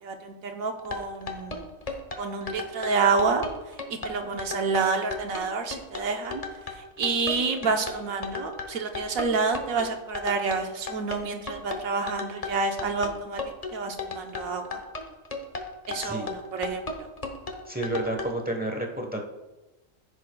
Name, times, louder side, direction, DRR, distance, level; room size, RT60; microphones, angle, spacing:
voice 1, 0.0-1.7 2.2-3.4 4.0-6.4 6.7-13.4 13.7-14.8 15.9-17.1, right 4 dB, 90° right, 4 dB, 1.4 m, -28 dB
sound 1, 0.8-18.3, left 4 dB, 30° left, 0.9 m, -35 dB
voice 2, 16.0-16.3 17.7-19.3, right 1 dB, 10° right, 2 dB, 0.9 m, -30 dB
15.0 x 6.9 x 2.3 m, 1.1 s
omnidirectional pair, 1.4 m